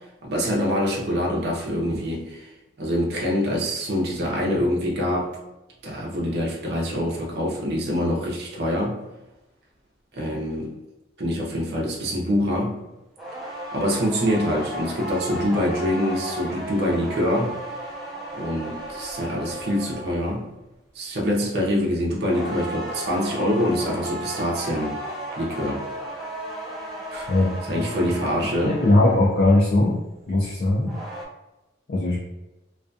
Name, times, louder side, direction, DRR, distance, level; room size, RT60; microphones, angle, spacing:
voice 1, 0.2-2.5 2.8-5.4 5.8-9.0 10.1-10.7 11.2-12.8 13.7-17.6 18.4-20.5 20.9-25.0 25.3-25.9 27.1-27.3 27.7-28.8, equal, 60° right, -3 dB, 0.6 m, -25 dB
sound 1, 13.2-20.3 22.3-29.4 30.6-31.2, right 1 dB, ahead, 0.5 m, -35 dB
voice 2, 27.3-27.8 28.7-30.0 30.3-30.9 31.9-32.2, left 2 dB, 55° left, -4 dB, 0.4 m, -20 dB
2.4 x 2.2 x 2.5 m, 1.0 s
head